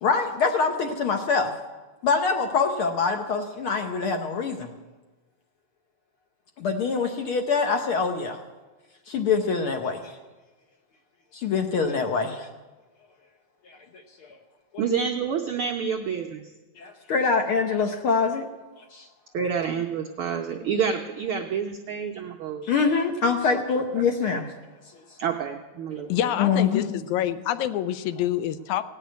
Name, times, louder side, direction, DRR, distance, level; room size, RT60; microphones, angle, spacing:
voice 1, 0.0-1.5 2.0-4.7 6.6-8.4 9.1-10.1 11.3-12.5 13.7-14.4 16.8-18.5 18.9-19.1 22.6-24.5 26.4-27.0, left 5 dB, 65° left, 4 dB, 1.4 m, -25 dB
voice 2, 14.8-16.4 19.3-22.6 23.5-23.6 25.2-26.1, right 6 dB, 90° right, 3 dB, 1.1 m, -28 dB
voice 3, 26.1-28.9, left 11 dB, 80° left, 13 dB, 2.0 m, -27 dB
17.0 x 6.5 x 9.2 m, 1.2 s
omnidirectional pair, 3.4 m